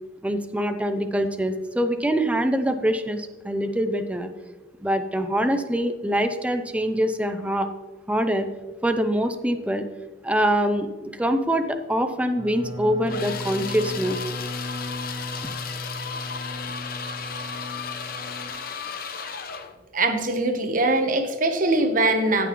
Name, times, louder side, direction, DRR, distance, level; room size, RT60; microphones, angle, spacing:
voice 1, 0.2-4.3 4.8-7.7 8.1-8.5 8.8-9.8 10.2-14.2, equal, 5° right, 8 dB, 0.5 m, -24 dB
sound 1, 12.4-18.5, left 1 dB, 25° right, 1.8 m, -36 dB
sound 2, 13.1-19.7, left 6 dB, 50° left, 0.7 m, -34 dB
voice 2, 19.9-22.5, right 2 dB, 45° right, 6 dB, 1.0 m, -22 dB
16.0 x 6.0 x 3.1 m, 1.3 s
head